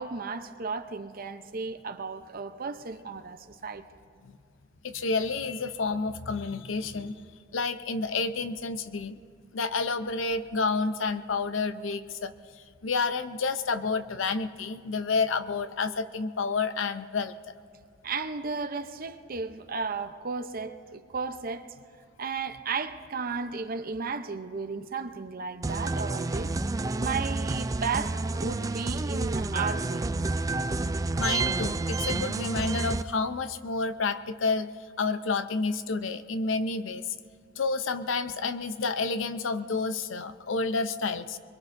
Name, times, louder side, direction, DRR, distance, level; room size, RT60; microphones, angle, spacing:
voice 1, 0.0-3.8 18.0-21.7 22.2-26.6 27.0-30.1, right 4 dB, 50° right, 9 dB, 0.7 m, -34 dB
voice 2, 4.8-7.1 7.5-9.2 9.5-12.3 12.8-17.3 31.2-34.7 35.0-37.1 37.6-41.4, left 4 dB, 85° left, 11 dB, 0.6 m, -29 dB
sound 1, 25.6-33.0, right 3 dB, 20° right, 0.3 m, -29 dB
23.0 x 23.0 x 2.6 m, 2.2 s
head